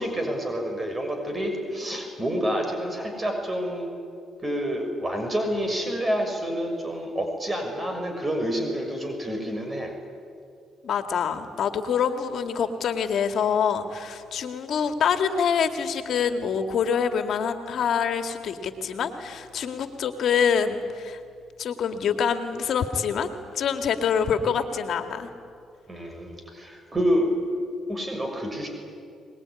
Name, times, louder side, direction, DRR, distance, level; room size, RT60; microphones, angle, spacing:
voice 1, 0.0-3.9 4.4-10.0 25.9-27.3 27.9-28.7, equal, 30° right, 3 dB, 6.4 m, -28 dB
voice 2, 10.8-21.2 21.6-23.3 23.5-25.3, left 7 dB, 65° left, 7 dB, 2.1 m, -25 dB
24.0 x 20.5 x 9.9 m, 2.3 s
supercardioid pair, 60°, 0 cm